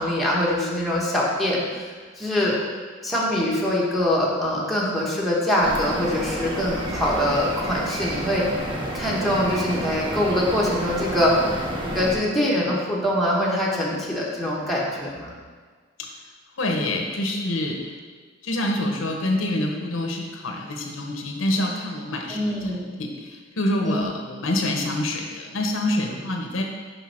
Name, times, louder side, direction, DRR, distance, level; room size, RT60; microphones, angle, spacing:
voice 1, 0.0-1.6 2.2-2.5 3.0-8.5 8.9-11.7 11.9-15.3 22.3-22.9 23.8-24.0, left 1 dB, ahead, -5 dB, 1.2 m, -23 dB
sound 1, 5.6-12.2, right 1 dB, 25° right, 0.9 m, -30 dB
voice 2, 16.6-17.9 18.4-22.7 23.0-26.6, left 1 dB, 90° left, 2 dB, 0.9 m, -26 dB
6.2 x 5.4 x 4.4 m, 1.5 s
head